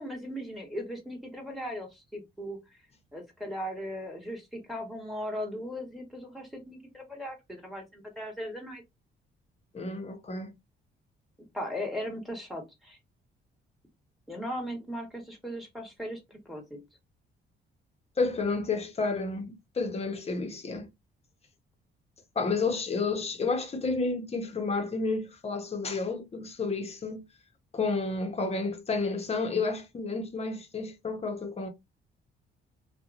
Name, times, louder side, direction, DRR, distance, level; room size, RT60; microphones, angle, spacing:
voice 1, 0.0-2.6 3.1-8.8 11.5-13.0 14.3-16.8, equal, ahead, 1.3 m, -38 dB
voice 2, 9.7-10.5 18.2-20.9 22.4-27.2 27.7-31.7, left 3 dB, 30° left, 0.8 m, -31 dB
2.8 x 2.3 x 2.4 m
cardioid pair, 90°, 20 cm